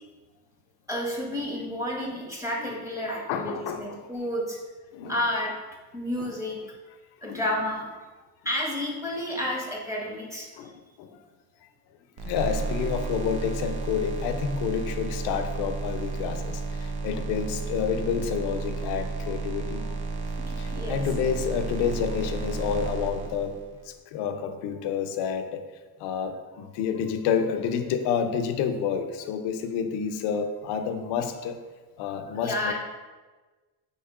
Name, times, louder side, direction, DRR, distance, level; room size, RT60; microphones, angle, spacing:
voice 1, 0.9-4.6 5.1-5.5 5.9-6.7 7.2-7.9 8.4-10.5 20.5-21.0 32.4-32.7, left 1 dB, 5° right, -2 dB, 1.0 m, -31 dB
voice 2, 3.3-4.0 4.9-5.2 6.2-6.3 7.2-7.4 9.4-9.5 10.6-10.7 11.0-11.1 12.2-19.8 20.6-23.6 24.1-25.6 26.0-31.6 32.0-32.7, left 7 dB, 75° left, 7 dB, 0.6 m, -29 dB
sound 1, 12.2-23.8, right 3 dB, 80° right, 0.7 m, -32 dB
3.6 x 2.9 x 4.8 m, 1.3 s
cardioid pair, 110°, 41 cm